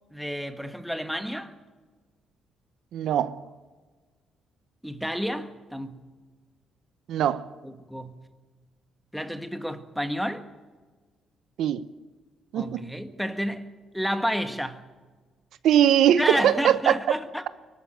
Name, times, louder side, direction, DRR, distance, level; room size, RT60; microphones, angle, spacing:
voice 1, 0.1-1.5 4.8-6.0 7.6-8.2 9.1-10.5 12.5-14.8 16.2-17.5, equal, ahead, 1.6 m, -30 dB
voice 2, 2.9-3.4 7.1-7.5 11.6-11.8 12.5-12.8 15.6-16.9, right 10 dB, 80° right, 0.7 m, -21 dB
23.0 x 13.0 x 9.1 m
cardioid pair, 90°, 0 cm